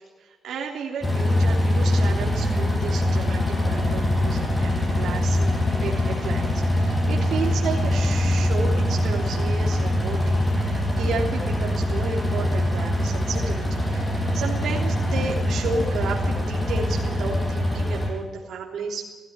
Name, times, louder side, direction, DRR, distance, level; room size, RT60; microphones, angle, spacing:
voice 1, 0.2-19.0, right 4 dB, 80° right, -1 dB, 3.3 m, -32 dB
sound 1, 1.0-18.1, left 1 dB, 25° left, 7.6 m, -23 dB
17.0 x 16.0 x 9.7 m, 1.3 s
cardioid pair, 100°, 0 cm